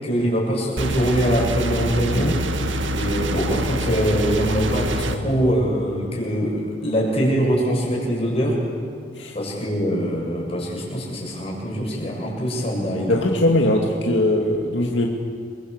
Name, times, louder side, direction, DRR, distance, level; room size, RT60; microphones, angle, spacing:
voice 1, 0.0-2.4 2.9-8.6 9.3-13.3, equal, 30° left, -2 dB, 7.3 m, -23 dB
sound 1, 0.8-5.2, right 1 dB, 80° right, 1.9 m, -25 dB
voice 2, 13.1-15.1, left 1 dB, 70° left, 0 dB, 2.4 m, -20 dB
28.5 x 23.0 x 8.2 m, 2.3 s
head